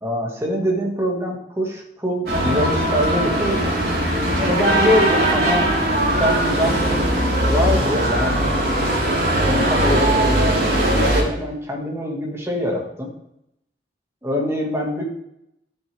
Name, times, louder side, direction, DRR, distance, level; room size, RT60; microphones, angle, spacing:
voice 1, 0.0-3.8 4.4-5.7 6.2-7.1 7.4-8.4 9.4-13.1 14.2-15.0, equal, 15° right, -1 dB, 1.9 m, -24 dB
sound 1, 2.3-11.2, right 1 dB, 60° right, 3.8 m, -19 dB
12.0 x 7.4 x 3.5 m, 0.80 s
head